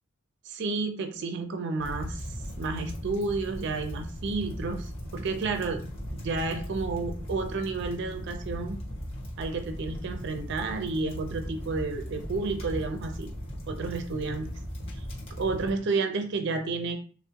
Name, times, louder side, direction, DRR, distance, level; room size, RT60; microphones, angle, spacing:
voice 1, 0.5-2.3 2.6-5.8 6.1-8.8 9.4-13.3 13.7-14.5 15.4-17.0, right 3 dB, 55° right, 6 dB, 0.4 m, -31 dB
sound 1, 1.8-15.7, equal, 25° left, 0.8 m, -38 dB
3.4 x 2.0 x 2.8 m, 0.41 s
head